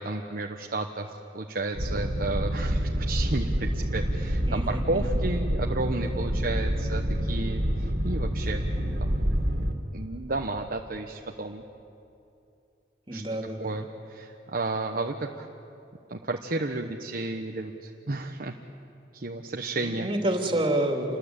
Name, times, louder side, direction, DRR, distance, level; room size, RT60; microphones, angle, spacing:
voice 1, 0.0-9.2 9.9-11.6 13.1-13.2 13.6-15.5 16.1-18.5 19.1-20.1, right 2 dB, 55° right, 2 dB, 1.1 m, -32 dB
Boat Water vehicle, 1.7-9.7, equal, 75° right, 2.5 m, -27 dB
voice 2, 4.5-5.1 13.1-13.7 19.8-21.2, right 1 dB, 30° right, 2 dB, 2.9 m, -28 dB
28.0 x 21.0 x 8.2 m, 2.7 s
head